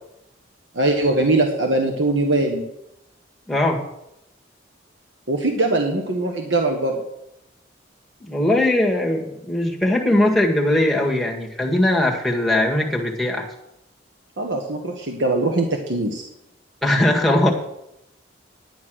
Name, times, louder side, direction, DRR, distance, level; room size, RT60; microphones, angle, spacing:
voice 1, 0.7-2.6 5.3-7.0 14.4-16.2, right 2 dB, 75° right, 3 dB, 1.3 m, -21 dB
voice 2, 3.5-3.8 8.2-13.5 16.8-17.5, left 1 dB, ahead, -2 dB, 1.7 m, -20 dB
10.5 x 9.6 x 6.3 m, 0.84 s
head